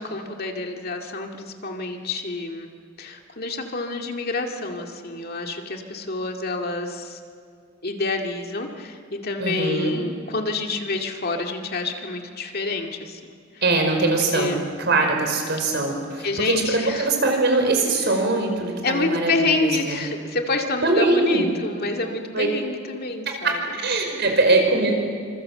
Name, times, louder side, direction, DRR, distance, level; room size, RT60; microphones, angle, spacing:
voice 1, 0.0-2.7 3.0-7.2 7.8-13.2 14.3-14.6 16.1-17.1 18.0-18.1 18.8-23.6, left 3 dB, 50° left, 3 dB, 2.3 m, -28 dB
voice 2, 9.4-10.0 13.6-14.5 14.8-20.0 20.8-21.5 22.3-22.5 23.3-24.9, right 2 dB, 55° right, 3 dB, 5.1 m, -22 dB
27.0 x 26.0 x 7.8 m, 2.1 s
head